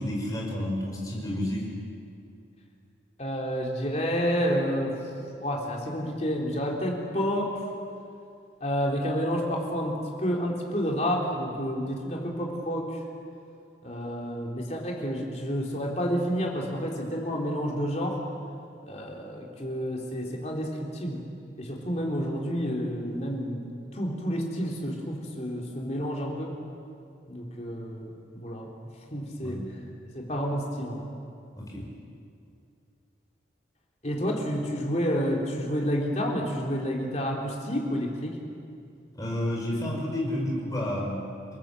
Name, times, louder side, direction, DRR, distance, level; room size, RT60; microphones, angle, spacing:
voice 1, 0.0-1.7 29.4-29.7 31.6-31.9 39.2-41.2, left 1 dB, 20° left, -2 dB, 5.3 m, -30 dB
voice 2, 3.2-5.0 5.4-7.7 8.6-13.0 13.8-18.2 18.9-21.2 21.6-23.6 23.9-26.5 27.3-28.7 29.1-29.6 30.1-31.1 34.0-38.4, equal, 35° left, -1 dB, 3.6 m, -29 dB
28.5 x 18.0 x 7.8 m, 2.5 s
head